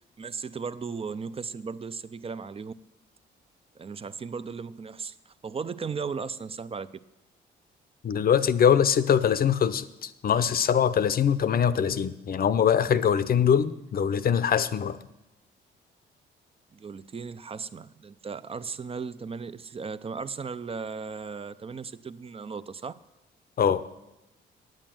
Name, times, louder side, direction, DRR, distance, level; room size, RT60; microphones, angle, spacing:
voice 1, 0.2-2.7 3.8-6.9 16.7-22.9, right 5 dB, 30° right, 0.5 m, -36 dB
voice 2, 8.0-15.0 23.6-23.8, left 8 dB, 50° left, 0.7 m, -23 dB
8.9 x 8.9 x 7.6 m
cardioid pair, 90°, 20 cm